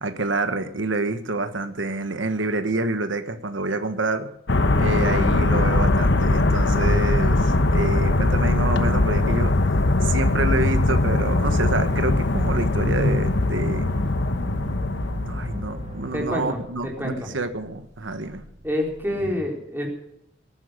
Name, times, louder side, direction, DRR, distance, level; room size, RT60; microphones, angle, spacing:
voice 1, 0.0-4.3 4.8-9.5 10.0-13.8 15.2-18.4, right 2 dB, 85° right, 9 dB, 1.4 m, -27 dB
sound 1, 4.5-16.1, left 2 dB, 65° left, 1.1 m, -21 dB
sound 2, 6.6-19.3, equal, 40° right, 1.5 m, -37 dB
voice 2, 16.1-17.3 18.6-19.9, left 1 dB, 10° right, 0 dB, 3.8 m, -28 dB
18.0 x 9.7 x 6.7 m, 0.78 s
head